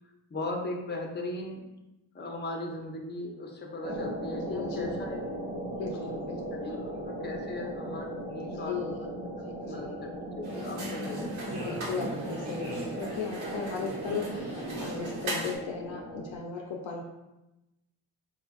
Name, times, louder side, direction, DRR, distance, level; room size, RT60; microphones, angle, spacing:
voice 1, 0.3-1.6 2.1-5.2 5.8-6.1 6.5-6.8 7.0-9.1 9.6-11.9, left 2 dB, 20° left, 1 dB, 0.8 m, -38 dB
sound 1, 3.8-16.4, equal, 20° right, 0.9 m, -38 dB
voice 2, 4.5-4.9 5.7-6.4 6.7-6.9 8.7-8.9 9.7-9.9 11.0-11.2 11.6-17.0, left 5 dB, 65° left, 1 dB, 0.6 m, -36 dB
sound 2, 10.4-15.6, right 1 dB, 70° right, 1.1 m, -37 dB
4.2 x 2.4 x 2.3 m, 0.95 s
supercardioid pair, 45°, 50 cm